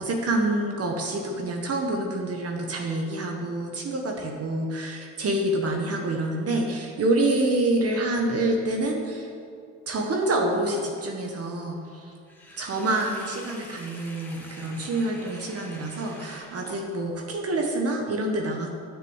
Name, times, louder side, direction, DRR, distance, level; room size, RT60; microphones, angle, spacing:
voice 1, 0.0-9.3 9.9-12.1 12.6-18.7, right 2 dB, 50° right, 1 dB, 1.5 m, -27 dB
Sink (filling or washing), 12.3-17.2, left 1 dB, 5° left, 2.1 m, -47 dB
10.0 x 6.5 x 7.3 m, 2.4 s
cardioid pair, 90°, 30 cm